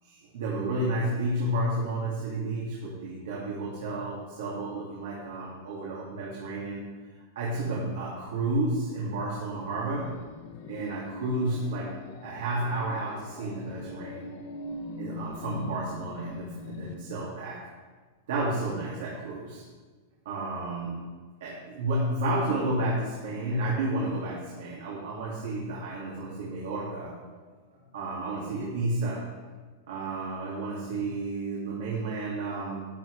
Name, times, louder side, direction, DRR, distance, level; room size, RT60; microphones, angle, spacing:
voice 1, 0.0-6.8 7.4-10.1 10.7-11.9 12.2-14.3 15.0-17.7 18.3-19.6 20.2-21.1 21.4-27.4 27.9-29.2 29.9-32.9, right 2 dB, 70° right, -4 dB, 2.2 m, -31 dB
sound 1, 9.6-16.9, left 2 dB, 50° left, 1.1 m, -41 dB
11.5 x 9.9 x 3.2 m, 1.4 s
supercardioid pair, 165°, 0 cm